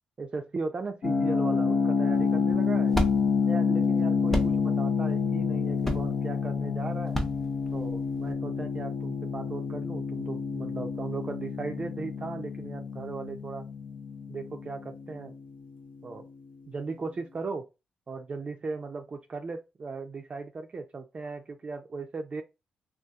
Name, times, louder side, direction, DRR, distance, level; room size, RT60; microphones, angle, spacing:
voice 1, 0.2-3.0 3.5-7.2 7.7-13.7 14.3-15.3 16.0-16.3 16.7-17.7 18.1-22.4, right 4 dB, 40° right, 0.4 m, -37 dB
sound 1, 1.0-15.8, left 5 dB, 70° left, 0.7 m, -28 dB
sound 2, 2.1-8.3, equal, 10° left, 0.5 m, -33 dB
2.6 x 2.4 x 2.3 m
cardioid pair, 70°, 3 cm